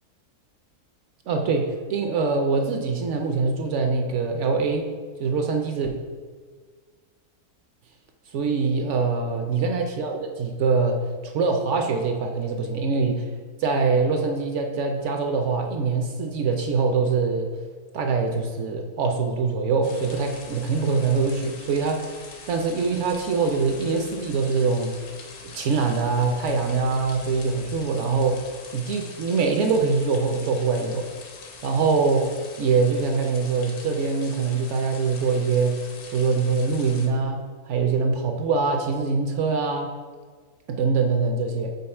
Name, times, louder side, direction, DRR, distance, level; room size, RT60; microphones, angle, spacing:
voice 1, 1.3-4.9 5.2-5.9 8.3-13.3 13.6-17.5 17.9-22.2 22.5-24.9 25.4-28.4 28.7-31.1 31.6-32.3 32.6-35.8 36.1-39.9 40.7-41.7, right 4 dB, 65° right, 3 dB, 0.7 m, -23 dB
sound 1, 19.8-37.1, left 4 dB, 75° left, 1.3 m, -44 dB
5.5 x 4.0 x 4.3 m, 1.5 s
omnidirectional pair, 1.6 m